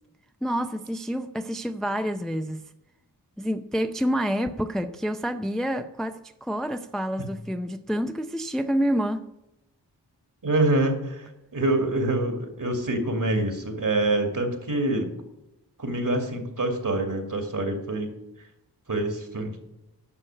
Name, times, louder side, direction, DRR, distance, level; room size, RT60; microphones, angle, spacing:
voice 1, 0.4-2.6 3.4-9.3, equal, ahead, 0.5 m, -28 dB
voice 2, 10.4-11.3 11.5-15.1 15.8-18.1 18.9-19.6, right 2 dB, 50° right, 2.5 m, -25 dB
11.0 x 6.4 x 8.8 m
wide cardioid pair, 70°, 41 cm